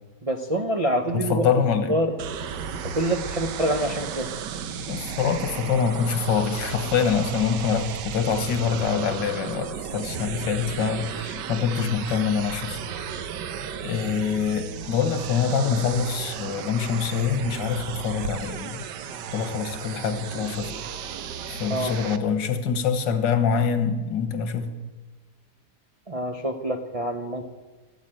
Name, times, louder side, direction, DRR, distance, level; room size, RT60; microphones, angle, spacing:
voice 1, 0.2-1.5 1.9-2.1 2.8-4.3 21.7-21.9 26.1-27.5, right 1 dB, 65° right, 2 dB, 0.3 m, -26 dB
voice 2, 1.1-2.0 4.9-12.8 13.1-13.3 13.8-18.9 19.3-20.7 21.5-24.7, left 6 dB, 90° left, 8 dB, 1.8 m, -25 dB
sound 1, 2.2-22.2, right 7 dB, 80° right, 1.4 m, -34 dB
13.5 x 8.2 x 8.9 m, 1.3 s
omnidirectional pair, 1.9 m